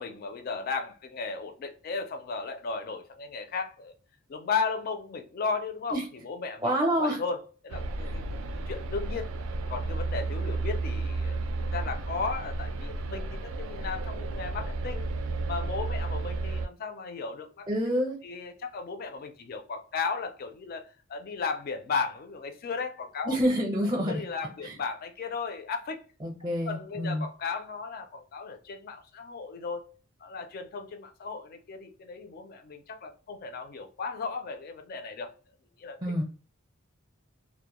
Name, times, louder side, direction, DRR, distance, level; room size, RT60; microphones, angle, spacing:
voice 1, 0.0-3.9 4.3-6.7 7.0-9.3 9.7-11.4 11.7-15.0 15.5-17.7 18.2-23.4 24.1-26.0 26.7-29.9 30.2-35.3 35.8-36.0, left 4 dB, 45° left, 0.4 m, -35 dB
voice 2, 6.6-7.2 17.7-18.2 23.2-24.2 24.6-24.7 26.2-27.3 36.0-36.2, equal, 20° right, 0.5 m, -27 dB
sound 1, 7.7-16.7, right 2 dB, 75° right, 0.3 m, -32 dB
2.1 x 2.1 x 2.8 m
head